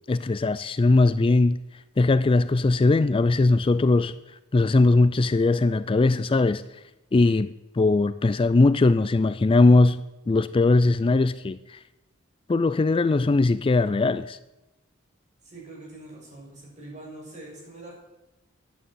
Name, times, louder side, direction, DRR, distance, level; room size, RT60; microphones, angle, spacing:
voice 1, 0.1-1.6 2.0-4.1 4.5-6.6 7.1-10.0 10.3-11.8 12.5-14.4, left 3 dB, 25° left, 0.4 m, -20 dB
voice 2, 15.4-18.0, right 2 dB, 35° right, 7.0 m, -43 dB
11.5 x 9.3 x 9.0 m
head